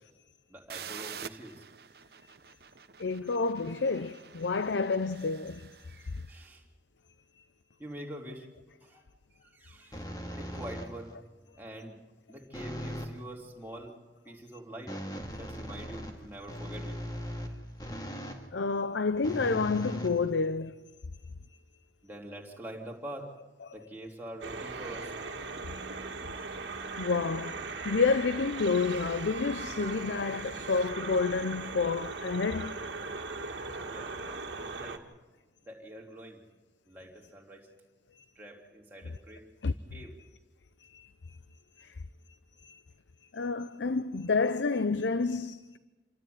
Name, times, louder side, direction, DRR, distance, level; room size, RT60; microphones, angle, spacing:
voice 1, 0.5-1.7 5.9-6.6 7.8-8.5 8.8-9.0 9.4-10.1 10.4-11.1 11.6-12.0 12.3-13.9 14.2-15.0 15.3-17.0 22.0-23.3 23.7-25.1 33.8-35.0 35.6-36.4 36.9-37.7 38.3-39.4 39.9-40.1, right 1 dB, 10° right, 3.0 m, -45 dB
sound 1, 0.7-6.4, right 7 dB, 60° right, 0.8 m, -47 dB
voice 2, 3.0-5.7 7.4-7.5 18.5-20.8 23.6-23.7 27.0-32.8 38.1-38.2 39.6-39.7 40.0-40.1 40.8-41.4 41.8-41.9 42.6-42.8 43.3-45.8, left 4 dB, 90° left, 0.6 m, -29 dB
sound 2, 9.9-11.1 12.5-13.2 14.9-18.5 19.2-20.7, equal, 20° left, 2.1 m, -39 dB
sound 3, 24.4-35.0, right 3 dB, 90° right, 1.9 m, -39 dB
27.5 x 13.0 x 9.4 m
head